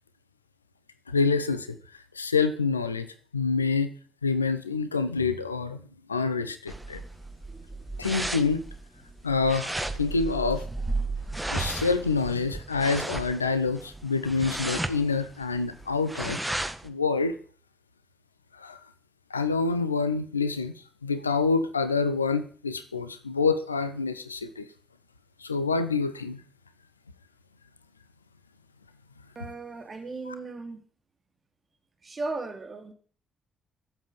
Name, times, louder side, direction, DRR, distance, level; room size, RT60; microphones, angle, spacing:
voice 1, 1.1-1.8 2.2-3.1 3.3-3.9 4.2-5.8 6.1-7.0 8.0-8.6 9.2-9.7 10.0-10.6 11.5-16.4 16.8-17.3 18.6-18.8 19.3-20.7 21.0-24.7 25.4-26.4 30.3-30.4, left 4 dB, 85° left, 12 dB, 0.8 m, -27 dB
sound 1, 6.7-16.9, right 2 dB, 10° right, 1.6 m, -34 dB
voice 2, 29.3-30.8 32.0-32.9, right 3 dB, 35° right, 7 dB, 2.9 m, -36 dB
12.0 x 7.9 x 8.9 m, 0.43 s
figure-of-eight pair, 40°, 0 cm